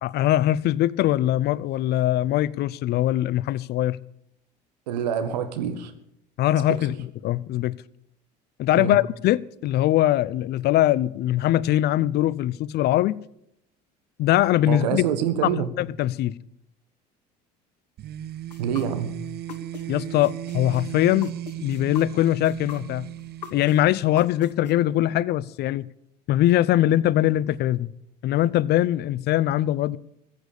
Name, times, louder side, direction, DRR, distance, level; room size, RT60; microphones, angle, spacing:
voice 1, 0.0-4.0 6.4-6.9 7.2-7.8 8.6-13.2 14.2-15.0 15.4-16.4 19.9-21.3 21.6-23.1 23.5-25.9 26.3-27.9 28.2-30.0, left 13 dB, 50° left, 0.6 m, -22 dB
voice 2, 4.9-5.9 6.7-6.8 8.7-9.0 14.7-15.7 18.6-19.1, right 8 dB, 80° right, 1.6 m, -26 dB
sound 1, 18.0-24.6, right 13 dB, 50° right, 1.0 m, -36 dB
sound 2, 18.5-19.8 20.2-24.7, left 8 dB, 90° left, 1.1 m, -41 dB
15.0 x 8.5 x 8.4 m
hypercardioid pair, 70°, 21 cm